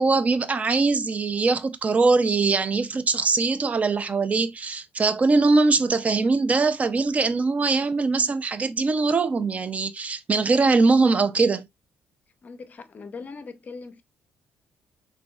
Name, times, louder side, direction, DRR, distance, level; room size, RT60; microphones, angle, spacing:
voice 1, 0.0-11.7, right 3 dB, 35° right, 0.5 m, -22 dB
voice 2, 12.4-14.0, left 4 dB, 40° left, 0.6 m, -40 dB
5.9 x 2.6 x 2.3 m
cardioid pair, 95°, 4 cm